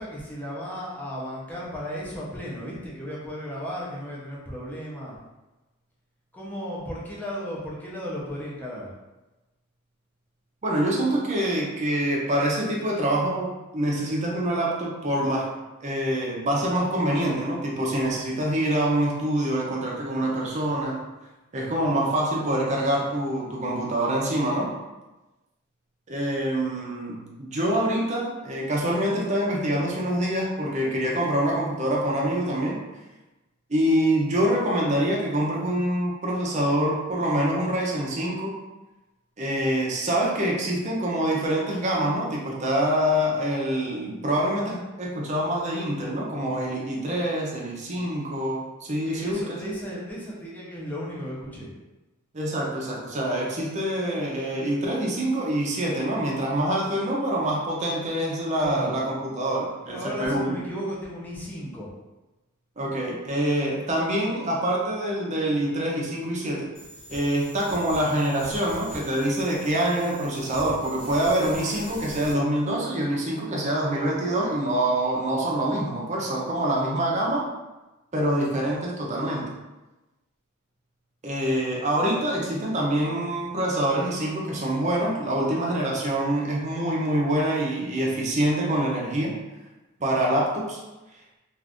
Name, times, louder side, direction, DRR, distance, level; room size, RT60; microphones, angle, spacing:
voice 1, 0.0-5.2 6.3-8.9 49.0-51.7 58.6-58.9 59.8-61.9, equal, 10° left, -6 dB, 0.7 m, -35 dB
voice 2, 10.6-15.5 15.8-21.0 21.5-24.7 26.1-32.8 33.7-38.5 39.4-49.6 52.3-60.6 62.8-66.7 67.1-77.4 78.1-79.5 81.2-89.4 90.0-90.8, right 1 dB, 35° right, -3 dB, 0.6 m, -25 dB
sound 1, 66.7-72.3, equal, 35° left, 0.9 m, -42 dB
2.5 x 2.5 x 3.5 m, 1.1 s
head